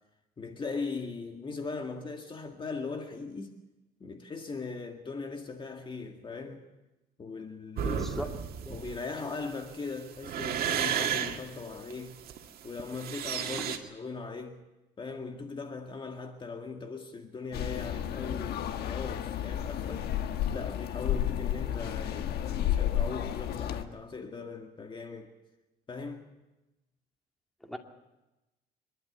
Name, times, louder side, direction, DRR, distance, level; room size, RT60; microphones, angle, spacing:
voice 1, 0.4-3.5 4.0-6.7 7.2-8.1 8.7-12.2 12.6-14.6 15.0-20.1 20.5-25.3 25.9-26.2, left 4 dB, 30° left, 1.9 m, -39 dB
voice 2, 7.8-8.3 8.7-8.8 13.6-13.7 27.6-27.8, equal, ahead, 2.4 m, -38 dB
sound 1, 7.8-13.8, right 8 dB, 60° right, 2.2 m, -33 dB
sound 2, 17.5-23.9, left 10 dB, 70° left, 1.3 m, -32 dB
26.0 x 12.0 x 9.7 m
cardioid pair, 110°, 17 cm